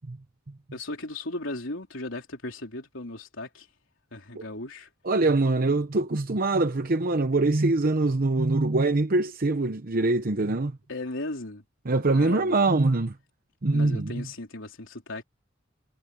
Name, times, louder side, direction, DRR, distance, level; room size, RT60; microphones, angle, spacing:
voice 1, 0.7-3.7 4.1-4.9 10.9-11.6 12.1-12.7 13.7-15.2, left 2 dB, 75° left, 3.8 m, -36 dB
voice 2, 5.0-10.7 11.9-13.1 13.6-14.1, right 2 dB, 45° right, 0.9 m, -23 dB
head